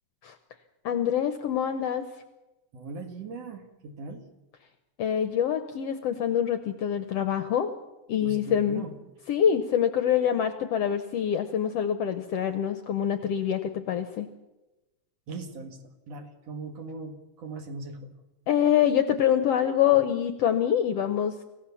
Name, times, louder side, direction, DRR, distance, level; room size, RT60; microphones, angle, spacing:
voice 1, 0.8-2.1 5.0-7.7 8.1-8.9 9.3-14.3 18.5-21.4, left 9 dB, 70° left, 10 dB, 1.6 m, -25 dB
voice 2, 2.7-4.3 8.2-8.9 15.3-15.8 16.1-18.1, right 3 dB, 55° right, 5 dB, 2.8 m, -39 dB
26.5 x 15.5 x 7.1 m, 1.0 s
omnidirectional pair, 3.6 m